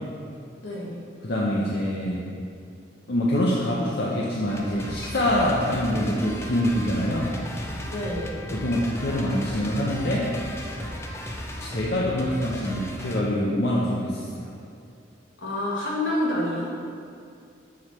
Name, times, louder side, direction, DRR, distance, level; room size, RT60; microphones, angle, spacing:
voice 1, 0.6-1.0 7.9-8.3 15.4-16.7, left 1 dB, 70° left, -5 dB, 1.6 m, -28 dB
voice 2, 1.2-2.2 3.1-7.3 8.5-10.3 11.6-14.5, left 1 dB, 55° left, -5 dB, 0.7 m, -25 dB
sound 1, 4.5-13.2, equal, 15° left, 0.4 m, -35 dB
7.1 x 4.7 x 4.2 m, 2.4 s
head